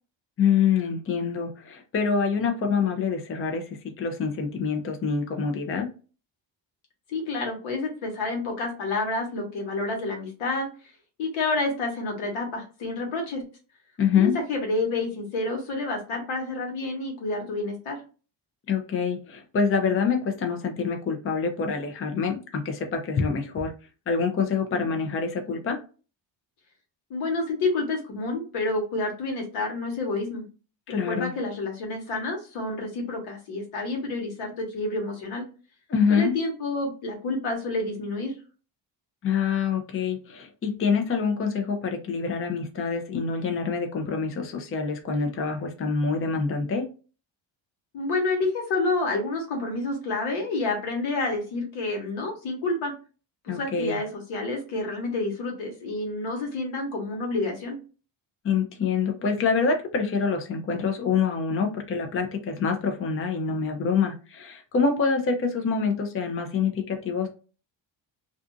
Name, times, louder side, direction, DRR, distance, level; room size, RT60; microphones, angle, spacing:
voice 1, 0.4-5.9 14.0-14.4 18.7-23.7 24.1-25.8 30.9-31.3 35.9-36.3 39.2-46.9 53.5-54.0 58.4-67.3, left 5 dB, 30° left, 4 dB, 0.5 m, -26 dB
voice 2, 7.1-10.7 11.2-13.4 14.1-18.0 27.1-30.4 30.9-35.4 36.1-38.3 47.9-52.9 53.4-57.8, left 2 dB, 85° left, 1 dB, 1.2 m, -29 dB
2.5 x 2.4 x 2.5 m, 0.35 s
cardioid pair, 95°, 47 cm